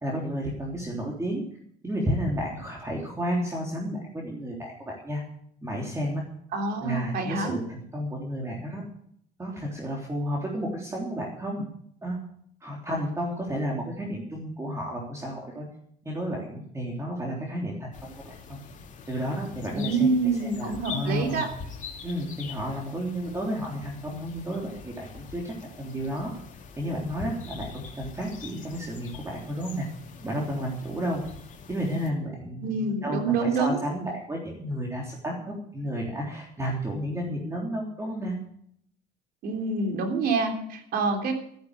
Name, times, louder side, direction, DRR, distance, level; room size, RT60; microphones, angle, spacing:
voice 1, 0.0-1.4 1.8-5.2 5.6-6.2 6.8-8.8 9.4-11.7 12.0-12.2 12.6-15.7 16.1-18.6 19.1-21.4 22.0-26.3 26.8-29.9 30.2-31.2 31.7-38.4, equal, 15° right, -2 dB, 3.4 m, -32 dB
voice 2, 6.5-7.5 19.7-21.5 32.6-33.7 39.4-41.3, right 4 dB, 70° right, 5 dB, 3.4 m, -26 dB
sound 1, 17.9-32.1, left 6 dB, 50° left, 2.4 m, -44 dB
13.5 x 10.5 x 6.7 m, 0.67 s
cardioid pair, 110°, 17 cm